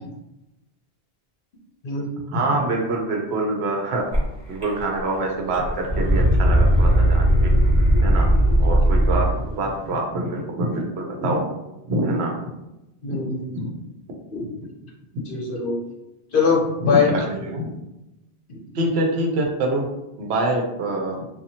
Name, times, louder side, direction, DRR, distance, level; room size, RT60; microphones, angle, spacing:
voice 1, 2.3-4.0 4.5-7.5 8.0-8.3 8.6-11.5 11.9-12.3 13.5-13.7 16.8-17.7 18.7-19.9 20.2-21.2, right 1 dB, 75° right, 0 dB, 0.9 m, -25 dB
sound 1, 4.1-4.2 4.6-5.2 5.5-9.4, equal, 25° right, 0.9 m, -18 dB
voice 2, 13.0-13.5 14.3-14.4 15.3-15.8 16.3-17.1 18.5-18.6, left 5 dB, 60° left, -3 dB, 0.8 m, -22 dB
2.7 x 2.3 x 2.7 m, 0.93 s
omnidirectional pair, 1.1 m